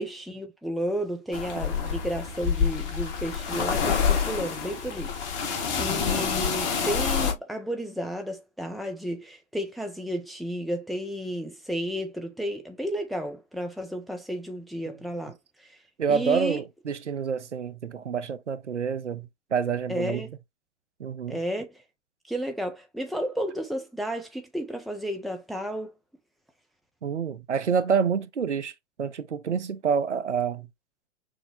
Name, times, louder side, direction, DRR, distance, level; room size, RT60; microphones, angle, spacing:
voice 1, 0.0-5.1 5.4-15.8 16.1-16.6 19.9-20.3 21.3-21.8 22.3-25.9, equal, ahead, 0.4 m, -32 dB
sound 1, 1.3-7.3, left 6 dB, 40° left, 1.4 m, -27 dB
voice 2, 5.9-6.3 16.0-20.2 21.0-21.4 27.0-30.7, right 6 dB, 80° right, 0.7 m, -28 dB
6.4 x 2.2 x 3.4 m
figure-of-eight pair, 105°, 35 cm